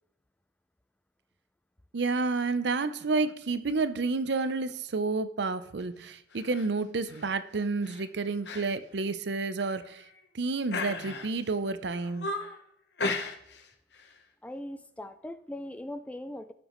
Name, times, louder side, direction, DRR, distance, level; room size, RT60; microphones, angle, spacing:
voice 1, 1.9-10.0 10.3-12.3, right 3 dB, 65° right, 12 dB, 0.6 m, -30 dB
sound 1, 6.3-6.7 7.1-7.3 7.8-8.0 8.4-8.7 9.0-9.1 9.7-10.2 10.7-11.5 11.9-12.6 13.0-13.7 13.9-14.2, left 3 dB, 65° left, 0.9 m, -35 dB
voice 2, 14.4-16.5, left 1 dB, 10° left, 11 dB, 0.4 m, -40 dB
17.5 x 6.1 x 3.0 m, 0.76 s
head